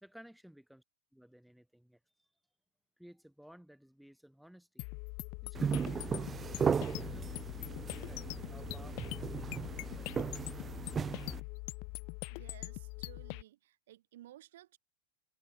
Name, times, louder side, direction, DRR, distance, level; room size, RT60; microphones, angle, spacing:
voice 1, 0.0-0.8 1.1-2.3 3.0-4.8 5.4-6.3 6.9-10.6 11.4-11.5, equal, ahead, 1.8 m, -58 dB
sound 1, 4.8-13.4, left 35 dB, 45° left, 0.5 m, -43 dB
sound 2, 5.5-11.4, right 6 dB, 20° right, 0.5 m, -36 dB
voice 2, 12.3-14.8, right 14 dB, 55° right, 4.3 m, -56 dB
figure-of-eight pair, 90°, 0 cm